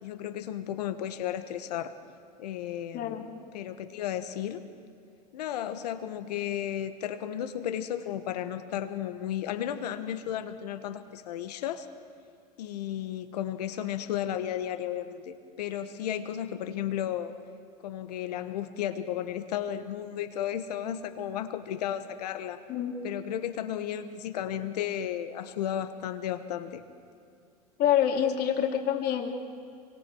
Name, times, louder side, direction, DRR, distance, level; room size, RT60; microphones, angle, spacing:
voice 1, 0.0-1.9 2.4-3.3 3.5-4.6 5.3-11.9 12.6-17.3 17.8-22.6 23.0-26.8, left 10 dB, 85° left, 10 dB, 1.4 m, -34 dB
voice 2, 27.8-29.3, left 9 dB, 50° left, 3 dB, 2.6 m, -26 dB
25.5 x 24.5 x 4.8 m, 2.5 s
hypercardioid pair, 100°, 20 cm